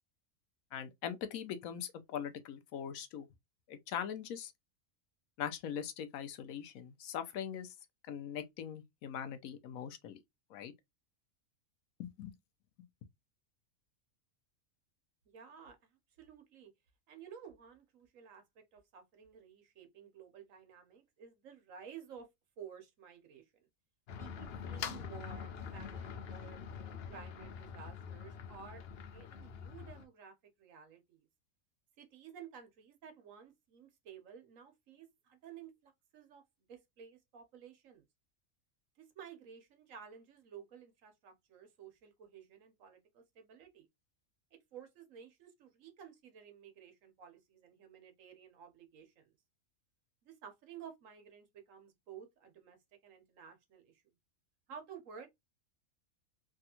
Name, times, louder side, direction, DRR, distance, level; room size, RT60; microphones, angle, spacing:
voice 1, 0.7-3.3 3.7-4.5 5.4-7.7 8.1-10.2 10.5-10.7 12.0-12.3, left 8 dB, 90° left, 1.1 m, -41 dB
voice 2, 15.2-16.7 17.1-22.3 22.6-23.7 24.2-31.3 32.0-36.4 36.7-38.0 39.0-43.9 44.5-49.4 50.2-52.8 53.0-54.0 54.7-55.3, right 7 dB, 70° right, 1.3 m, -54 dB
sound 1, 24.1-30.1, left 7 dB, 60° left, 0.7 m, -45 dB
3.4 x 2.4 x 2.7 m
omnidirectional pair, 1.4 m